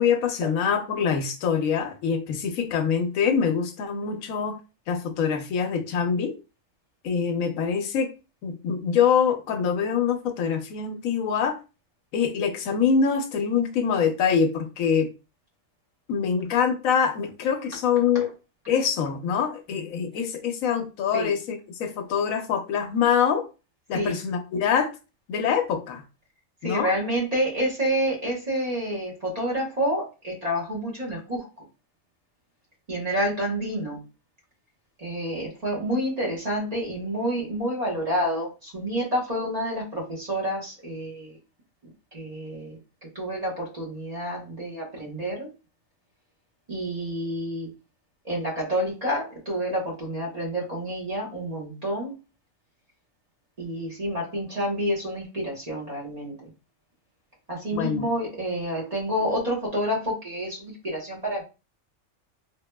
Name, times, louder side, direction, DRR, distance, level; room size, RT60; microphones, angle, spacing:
voice 1, 0.0-4.6 4.9-6.3 7.0-8.1 8.4-11.6 12.1-15.1 16.1-18.3 18.7-23.4 23.9-24.9 25.3-26.0 26.6-26.9 57.7-58.1, left 7 dB, 90° left, 1.1 m, -24 dB
voice 2, 26.6-31.5 32.9-34.0 35.0-41.4 42.1-42.8 43.1-45.5 46.7-47.7 48.2-52.1 53.6-56.5 57.5-61.4, equal, 30° right, 1.0 m, -28 dB
3.2 x 2.8 x 2.2 m
omnidirectional pair, 1.4 m